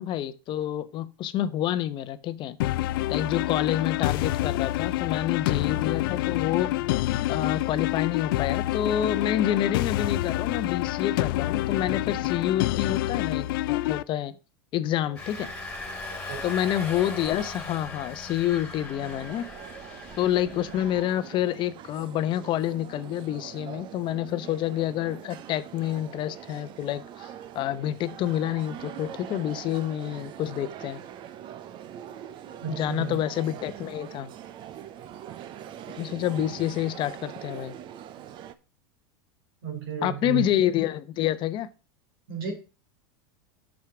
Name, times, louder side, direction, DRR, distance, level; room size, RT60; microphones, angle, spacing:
voice 1, 0.0-2.6 3.1-6.7 7.3-14.4 14.7-15.5 16.4-19.5 20.2-27.3 27.5-31.0 32.7-34.3 36.0-37.7 40.0-41.7, left 12 dB, 40° left, 0.8 m, -28 dB
sound 1, 2.6-14.0, left 16 dB, 70° left, 0.4 m, -27 dB
Engine, 15.2-21.0, left 2 dB, 10° left, 2.6 m, -38 dB
voice 2, 16.1-16.5 32.6-33.2 39.6-40.5 42.3-42.5, right 8 dB, 80° right, 3.4 m, -33 dB
sound 2, 19.0-38.5, right 10 dB, 40° right, 0.8 m, -43 dB
6.3 x 5.9 x 5.9 m
supercardioid pair, 110°, 12 cm